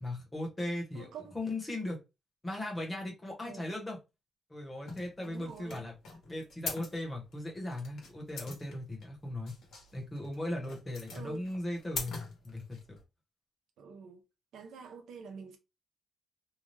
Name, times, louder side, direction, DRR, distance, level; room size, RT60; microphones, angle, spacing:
voice 1, 0.0-1.1 1.3-2.0 2.4-4.0 4.5-5.9 6.3-9.5 9.9-12.8, left 1 dB, 15° left, 0.9 m, -38 dB
voice 2, 0.9-1.3 3.4-3.6 5.2-5.8 11.1-11.5 13.8-14.2 14.5-15.6, right 5 dB, 90° right, 0.6 m, -46 dB
sound 1, 4.9-13.0, left 3 dB, 70° left, 1.2 m, -43 dB
2.7 x 2.2 x 3.1 m
wide cardioid pair, 165°, 0 cm